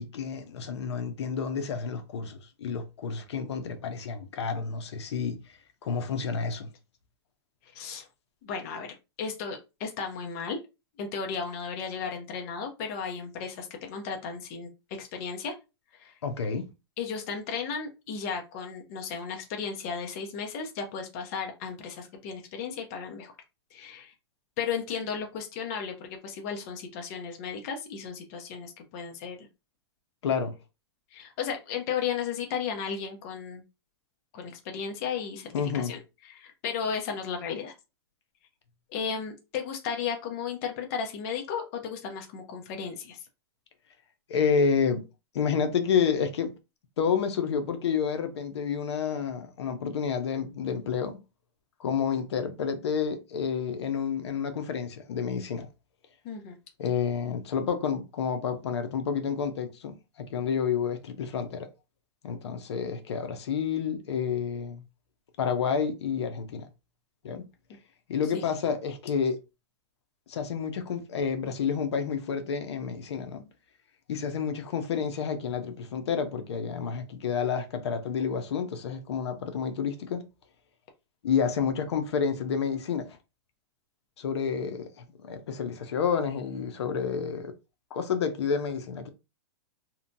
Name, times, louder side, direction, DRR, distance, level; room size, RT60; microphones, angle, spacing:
voice 1, 0.0-5.4 5.8-6.7 16.2-16.6 30.2-30.5 35.5-35.9 44.3-45.0 45.3-46.5 47.0-51.2 51.8-55.7 56.8-61.7 62.2-64.8 65.4-66.7 67.2-67.4 68.1-69.4 70.3-73.4 74.1-80.2 81.2-83.2 84.2-84.9 85.2-87.5 87.9-89.1, left 6 dB, 75° left, 0.6 m, -29 dB
voice 2, 7.7-8.1 8.4-8.9 9.2-10.6 11.0-14.7 15.0-15.6 16.0-16.1 17.0-23.3 23.7-24.1 24.6-29.4 31.1-33.6 34.3-35.5 35.7-36.0 36.3-37.7 38.9-43.2 56.2-56.6 68.3-68.5, left 6 dB, 35° left, 0.5 m, -34 dB
2.8 x 2.2 x 2.6 m
hypercardioid pair, 165°, 14 cm